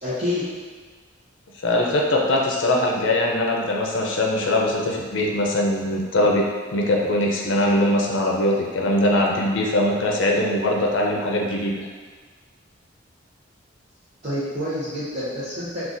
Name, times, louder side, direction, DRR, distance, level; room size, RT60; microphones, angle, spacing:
voice 1, 0.0-0.4 14.2-15.9, left 1 dB, 35° right, -13 dB, 0.8 m, -27 dB
voice 2, 1.6-11.9, left 1 dB, 70° left, -1 dB, 0.5 m, -21 dB
3.8 x 2.4 x 2.5 m, 1.5 s
head